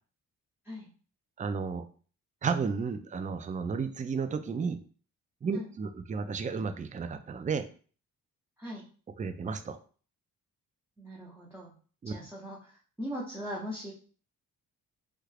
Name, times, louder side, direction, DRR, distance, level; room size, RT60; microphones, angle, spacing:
voice 1, 1.4-1.8 2.4-4.8 5.4-7.7 9.2-9.8 12.0-12.1, right 5 dB, 20° right, 10 dB, 0.4 m, -32 dB
voice 2, 11.0-11.7 12.0-13.9, equal, 5° right, -5 dB, 0.9 m, -40 dB
3.3 x 2.4 x 3.2 m, 0.41 s
cardioid pair, 65°, 36 cm